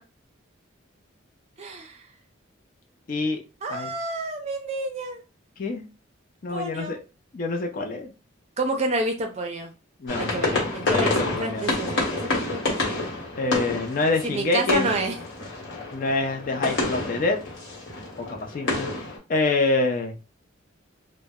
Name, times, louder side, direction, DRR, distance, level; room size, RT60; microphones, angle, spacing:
voice 1, 1.6-2.0 3.6-5.2 6.5-7.0 8.6-9.7 10.2-13.1 14.2-15.2, right 2 dB, 30° right, 3 dB, 0.4 m, -29 dB
voice 2, 3.1-3.4 3.7-3.9 5.6-5.8 6.4-7.0 7.3-8.1 10.0-11.7 13.4-14.9 15.9-17.4 18.2-18.9 19.3-20.2, left 3 dB, 40° left, 3 dB, 0.4 m, -26 dB
sound 1, 10.1-19.2, left 2 dB, 65° left, 1.1 m, -28 dB
2.0 x 2.0 x 3.4 m, 0.31 s
head